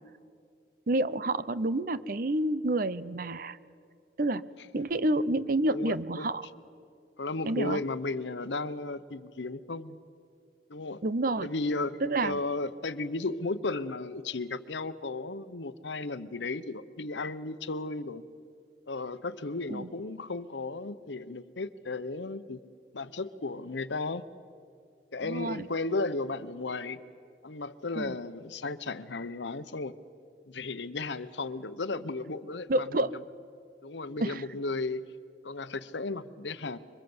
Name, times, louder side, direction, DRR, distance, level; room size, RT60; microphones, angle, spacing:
voice 1, 0.9-3.6 4.2-4.4 4.7-6.5 7.4-7.8 11.0-11.5 12.0-12.4 19.7-19.9 25.2-25.7 28.0-28.2 32.7-33.1 34.2-34.4, right 2 dB, 50° right, 16 dB, 0.7 m, -29 dB
voice 2, 5.7-6.3 7.2-10.0 10.7-11.0 11.4-18.2 18.9-22.6 22.9-24.2 25.1-27.0 27.4-30.0 30.5-33.2 33.8-35.1 35.4-36.8, left 3 dB, 85° left, 14 dB, 0.9 m, -34 dB
26.5 x 24.0 x 7.9 m, 2.3 s
head